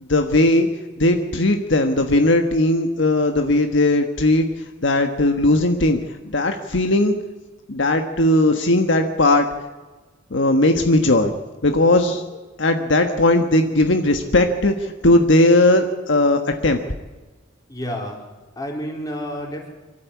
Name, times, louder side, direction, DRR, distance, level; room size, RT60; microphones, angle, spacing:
voice 1, 0.1-0.7 1.0-4.5 4.8-6.0 6.3-7.2 7.7-9.4 10.3-11.3 11.6-16.8, left 1 dB, 65° left, 6 dB, 1.4 m, -18 dB
voice 2, 17.7-18.2 18.6-19.7, equal, 20° left, 0 dB, 4.1 m, -29 dB
24.5 x 13.0 x 8.4 m, 1.3 s
head